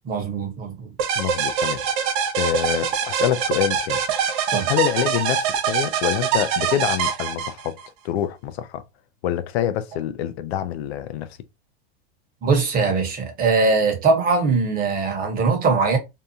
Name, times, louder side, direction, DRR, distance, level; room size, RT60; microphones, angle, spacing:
voice 1, 0.1-0.9 4.5-4.7 12.4-16.0, right 4 dB, 25° right, 1.0 m, -21 dB
sound 1, 1.0-7.9, right 7 dB, 55° right, 0.7 m, -24 dB
voice 2, 1.2-1.8 2.4-4.0 4.7-7.8 8.0-8.8 9.2-11.3, left 11 dB, 75° left, 0.5 m, -26 dB
2.7 x 2.3 x 2.6 m
supercardioid pair, 130°, 32 cm